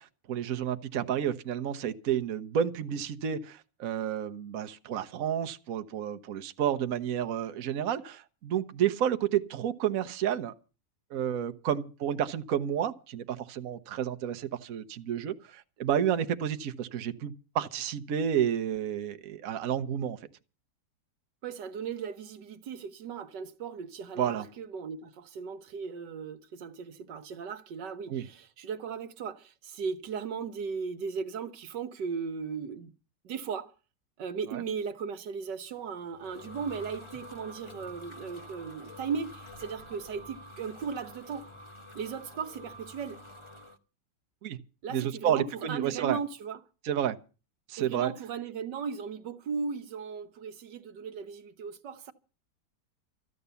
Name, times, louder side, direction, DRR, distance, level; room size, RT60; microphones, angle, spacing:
voice 1, 0.0-10.5 11.1-20.2 24.2-24.4 28.1-28.2 34.5-34.6 44.4-44.6 44.9-46.2 46.8-47.2 47.7-48.1, right 9 dB, 55° right, 1.2 m, -30 dB
voice 2, 21.4-32.9 33.3-33.7 34.2-41.5 42.0-43.2 44.8-46.6 47.8-52.1, right 6 dB, 75° right, 1.6 m, -37 dB
sound 1, 35.8-43.8, left 1 dB, 20° left, 1.1 m, -48 dB
14.0 x 11.0 x 6.9 m
omnidirectional pair, 1.9 m